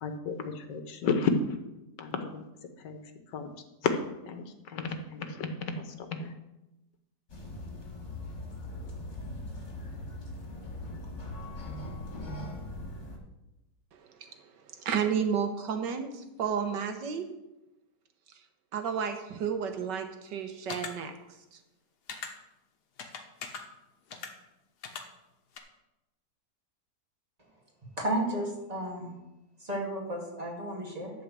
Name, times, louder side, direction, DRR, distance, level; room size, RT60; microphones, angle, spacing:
voice 1, 0.0-1.3 2.0-2.4 2.8-3.0 3.3-3.5 3.8-6.3, left 5 dB, 90° left, 7 dB, 1.7 m, -32 dB
sound 1, 7.3-13.2, left 1 dB, 40° left, 2.3 m, -40 dB
voice 2, 13.9-17.3 18.3-18.4 18.7-21.2 21.5-21.6, right 7 dB, 85° right, 6 dB, 1.7 m, -32 dB
sound 2, 20.7-20.9 22.1-22.3 23.0-23.6 24.1-24.3 24.8-25.0 25.6-25.7, left 5 dB, 70° left, 1.6 m, -39 dB
voice 3, 28.0-29.2 29.6-31.1, right 1 dB, 20° right, -1 dB, 2.2 m, -33 dB
11.5 x 4.7 x 7.5 m, 0.96 s
omnidirectional pair, 1.8 m